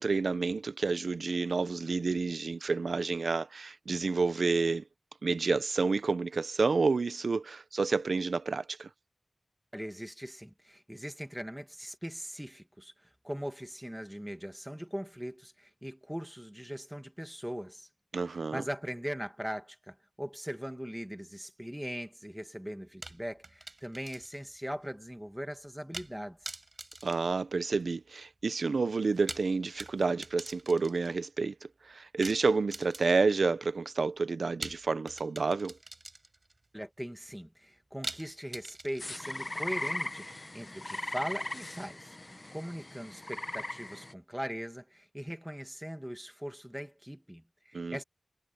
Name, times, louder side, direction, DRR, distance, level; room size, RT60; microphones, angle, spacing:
voice 1, 0.0-4.8 5.2-8.9 18.1-18.6 27.0-35.7 47.7-48.0, right 4 dB, 80° right, 0.6 m, -29 dB
voice 2, 9.7-17.9 18.3-26.5 36.7-42.2 42.5-48.0, equal, 5° right, 2.1 m, -40 dB
sound 1, 23.0-24.5 24.8-24.9 25.9-26.2 26.5-28.0 29.0-31.2 32.2-33.4 34.6-36.5 38.0-39.4, right 2 dB, 40° right, 5.4 m, -44 dB
sound 2, 39.0-44.1, left 2 dB, 30° left, 0.9 m, -39 dB
wide cardioid pair, 65°, 0 cm